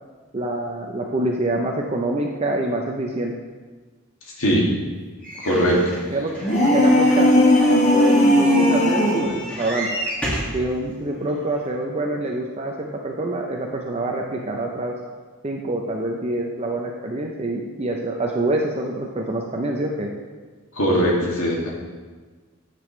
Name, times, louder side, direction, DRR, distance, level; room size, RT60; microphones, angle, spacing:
voice 1, 0.3-3.3 6.1-6.3 6.7-9.9 10.5-14.9 15.4-20.1, right 2 dB, 30° right, 0 dB, 0.6 m, -26 dB
voice 2, 4.4-4.7 5.4-6.0 20.8-21.7, equal, 75° left, -3 dB, 2.1 m, -20 dB
sound 1, 5.2-10.6 11.3-11.4 11.6-11.7, right 1 dB, 5° left, 2.0 m, -32 dB
sound 2, 6.4-9.4, left 1 dB, 30° left, 1.2 m, -16 dB
10.5 x 6.8 x 3.2 m, 1.4 s
head